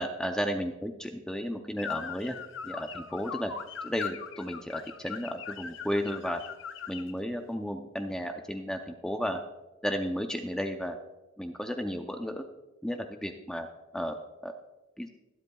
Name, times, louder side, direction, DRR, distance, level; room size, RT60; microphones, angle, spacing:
voice 1, 0.0-2.4 2.6-3.5 3.8-6.4 6.9-9.4 9.8-11.0 11.4-12.5 12.8-13.7 13.9-14.2 14.4-14.5 15.0-15.1, equal, 5° left, 5 dB, 0.4 m, -33 dB
sound 1, 1.8-7.1, left 7 dB, 65° left, 0.6 m, -40 dB
22.0 x 8.2 x 2.3 m, 1.1 s
head